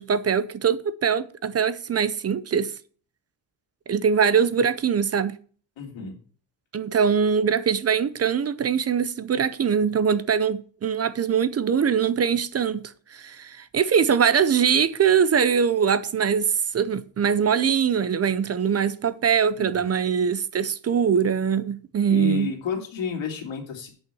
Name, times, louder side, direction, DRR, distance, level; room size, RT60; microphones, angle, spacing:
voice 1, 0.0-2.7 3.9-5.4 6.7-12.8 13.1-22.5, right 7 dB, 35° right, 0.5 m, -22 dB
voice 2, 5.8-6.2 19.6-19.9 22.1-23.9, left 6 dB, 85° left, 2.9 m, -31 dB
8.9 x 5.6 x 7.0 m
cardioid pair, 155°, 45 cm